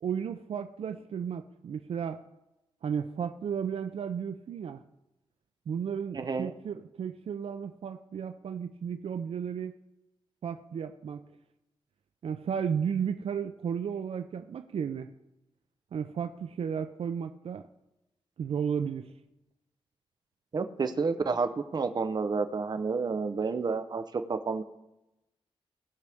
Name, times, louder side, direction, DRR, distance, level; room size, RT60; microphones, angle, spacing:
voice 1, 0.0-2.2 2.8-4.8 5.7-9.8 10.4-11.2 12.2-15.1 15.9-17.7 18.4-19.1, right 7 dB, 75° right, 9 dB, 0.5 m, -33 dB
voice 2, 6.1-6.5 20.5-24.6, right 4 dB, 45° right, 8 dB, 0.8 m, -30 dB
19.0 x 6.5 x 3.5 m, 0.93 s
wide cardioid pair, 130°, 10 cm